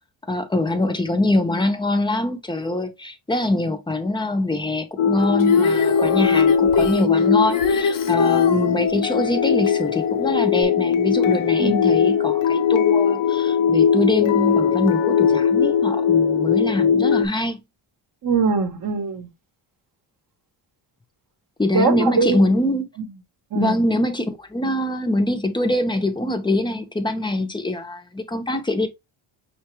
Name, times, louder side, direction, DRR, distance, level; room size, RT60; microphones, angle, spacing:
voice 1, 0.3-17.6 21.6-22.9 23.5-28.9, left 1 dB, 10° left, 0.6 m, -23 dB
sound 1, 5.0-17.3, left 7 dB, 85° left, 0.6 m, -19 dB
Female singing, 5.4-8.7 10.6-10.7, left 3 dB, 45° left, 0.7 m, -23 dB
voice 2, 11.6-11.9 18.2-19.3 21.7-22.4 23.5-23.7, right 4 dB, 45° right, 0.8 m, -22 dB
5.6 x 2.3 x 2.9 m
cardioid pair, 120°, 46 cm